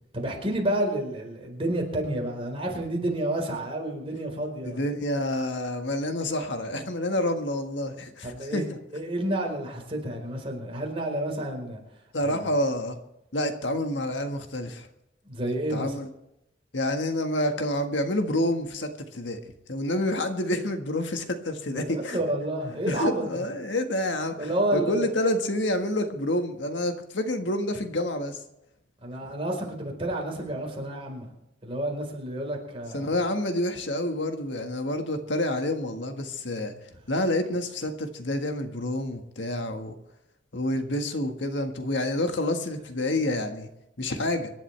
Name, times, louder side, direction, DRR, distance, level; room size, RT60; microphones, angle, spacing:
voice 1, 0.1-4.8 8.2-11.8 12.2-12.4 15.2-16.0 21.7-23.4 24.4-25.1 29.0-31.3 31.6-33.2, right 1 dB, 30° right, 0 dB, 4.4 m, -30 dB
voice 2, 4.6-8.6 12.1-13.0 13.3-14.9 15.7-16.1 16.7-19.4 19.7-22.2 22.9-28.4 32.9-36.7 37.1-40.0 40.5-43.7 44.0-44.5, left 1 dB, 75° left, 6 dB, 1.7 m, -28 dB
25.5 x 11.5 x 3.4 m, 0.86 s
head